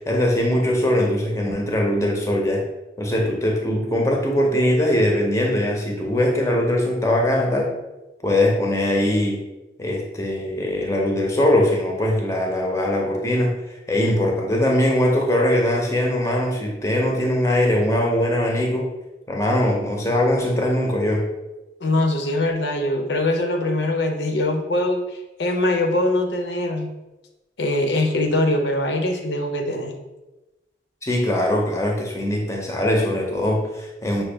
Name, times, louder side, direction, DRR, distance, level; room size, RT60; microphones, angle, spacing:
voice 1, 0.1-2.6 3.0-7.7 8.2-9.4 9.8-13.6 13.9-18.9 19.3-21.2 31.0-34.2, left 1 dB, 15° left, 0 dB, 0.6 m, -21 dB
voice 2, 21.8-25.0 25.4-26.9 27.6-29.9, left 1 dB, 75° left, 4 dB, 0.6 m, -22 dB
5.9 x 2.2 x 3.3 m, 1.0 s
head